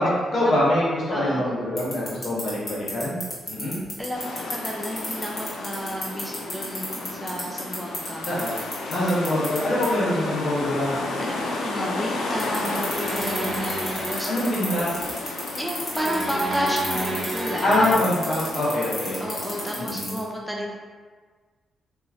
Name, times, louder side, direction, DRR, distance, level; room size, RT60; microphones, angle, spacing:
voice 1, 0.0-3.2 3.5-3.8 8.3-8.6 8.9-10.9 14.3-14.9 17.6-19.2 19.7-20.1, left 1 dB, 60° left, -7 dB, 1.4 m, -24 dB
voice 2, 1.1-1.5 4.0-8.3 9.9-10.3 11.2-14.3 15.6-17.7 19.2-20.8, equal, 5° right, -2 dB, 0.4 m, -31 dB
sound 1, 1.8-9.6 9.8-9.9 12.4-20.2, left 2 dB, 40° left, 1.4 m, -31 dB
sound 2, 4.1-19.8, left 2 dB, 90° left, 0.4 m, -33 dB
sound 3, 12.9-14.5 15.9-17.9, right 1 dB, 50° right, 1.2 m, -31 dB
3.1 x 2.5 x 3.6 m, 1.5 s
cardioid pair, 85°, 0 cm